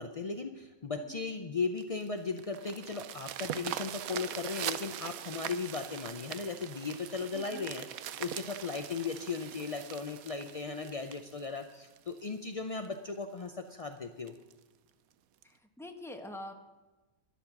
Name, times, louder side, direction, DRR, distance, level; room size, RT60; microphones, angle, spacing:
voice 1, 0.0-14.3, left 4 dB, 50° left, 6 dB, 0.4 m, -37 dB
sound 1, 1.8-12.3 12.8-12.9 13.4-13.5 13.8-13.9 14.3-14.5 15.4-15.5, right 11 dB, 75° right, 1.1 m, -42 dB
voice 2, 7.3-7.7 10.7-10.9 15.4-16.5, left 1 dB, ahead, 4 dB, 1.0 m, -45 dB
12.0 x 11.0 x 6.0 m, 1.2 s
omnidirectional pair, 1.6 m